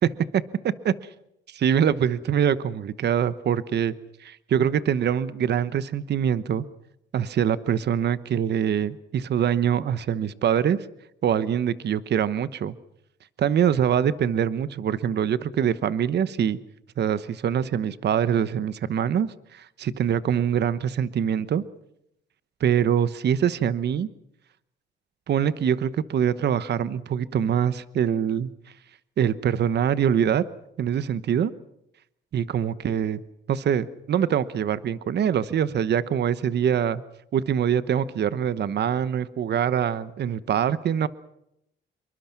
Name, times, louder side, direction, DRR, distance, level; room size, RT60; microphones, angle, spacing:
voice 1, 0.0-0.4 0.8-0.9 1.5-3.9 4.2-6.6 7.1-10.8 11.2-12.7 13.4-16.6 17.0-21.6 22.6-24.1 25.3-28.5 29.2-30.4 30.8-31.5 32.3-33.2 33.5-37.0 37.3-41.1, right 8 dB, 60° right, 15 dB, 1.1 m, -24 dB
27.5 x 23.0 x 5.9 m, 0.80 s
cardioid pair, 90°, 20 cm